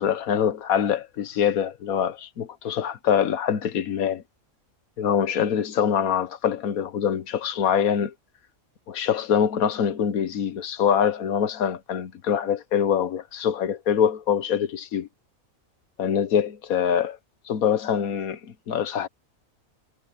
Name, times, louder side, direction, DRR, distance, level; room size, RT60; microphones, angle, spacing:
voice 1, 0.0-4.2 5.0-8.1 8.9-15.1 16.0-17.2 17.5-19.1, left 8 dB, 80° left, 1.4 m, -24 dB
omnidirectional pair, 1.5 m